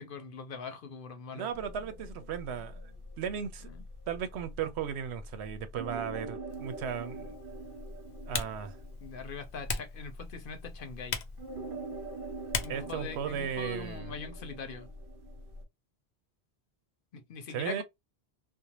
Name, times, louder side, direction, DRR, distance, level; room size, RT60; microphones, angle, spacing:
voice 1, 0.0-1.5 3.7-3.8 9.0-11.2 12.6-14.9 17.1-17.8, left 4 dB, 60° left, 0.7 m, -42 dB
voice 2, 1.3-2.8 3.2-3.7 4.1-7.3 8.3-8.8 12.7-14.1 17.5-17.8, right 8 dB, 90° right, 0.9 m, -36 dB
sound 1, 1.5-15.6, right 1 dB, 60° right, 0.9 m, -44 dB
Typing, 6.5-14.0, left 5 dB, 90° left, 0.8 m, -41 dB
2.6 x 2.0 x 2.9 m
omnidirectional pair, 1.1 m